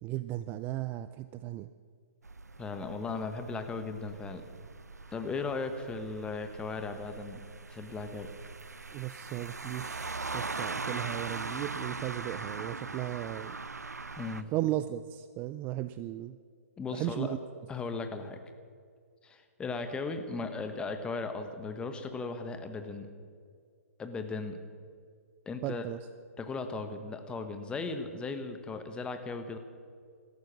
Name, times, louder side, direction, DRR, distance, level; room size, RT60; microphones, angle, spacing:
voice 1, 0.0-1.7 8.9-13.6 14.5-16.4 16.9-17.4 25.6-26.0, right 14 dB, 20° right, 13 dB, 0.4 m, -36 dB
sound 1, 2.2-14.4, right 4 dB, 85° right, 0.7 m, -41 dB
voice 2, 2.6-4.4 5.1-7.4 7.7-8.3 14.2-14.5 16.8-17.3 17.7-18.4 19.2-23.1 24.0-24.6 25.4-25.8 26.4-29.6, left 4 dB, 10° left, 7 dB, 1.3 m, -37 dB
17.0 x 13.5 x 6.2 m, 2.1 s
figure-of-eight pair, 130°, 9 cm